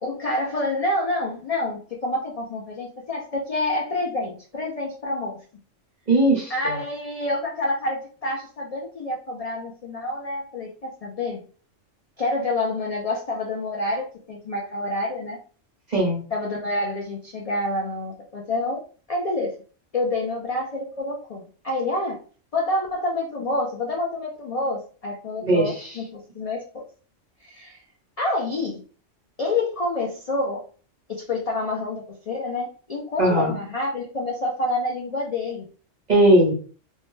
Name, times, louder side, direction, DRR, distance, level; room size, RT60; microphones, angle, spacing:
voice 1, 0.0-5.4 6.5-11.4 12.2-15.4 16.3-18.8 19.1-19.5 19.9-22.2 22.5-26.8 27.4-27.8 28.2-28.8 29.4-30.6 31.1-35.7, left 2 dB, 65° left, -1 dB, 0.3 m, -28 dB
voice 2, 6.1-6.8 15.9-16.2 25.4-25.9 33.2-33.5 36.1-36.5, right 1 dB, 40° right, -2 dB, 1.0 m, -19 dB
2.7 x 2.1 x 3.1 m, 0.39 s
omnidirectional pair, 1.3 m